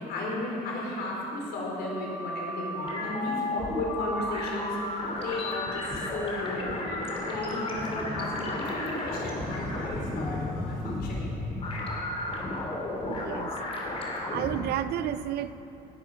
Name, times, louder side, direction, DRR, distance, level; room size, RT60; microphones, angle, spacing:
voice 1, 0.0-11.3, left 2 dB, 75° left, -2 dB, 4.3 m, -34 dB
sound 1, 1.4-14.6, left 2 dB, 35° left, 3.1 m, -33 dB
voice 2, 13.0-13.5 14.3-15.5, right 12 dB, 70° right, 14 dB, 0.6 m, -31 dB
19.5 x 12.0 x 5.0 m, 2.9 s
cardioid pair, 110°, 17 cm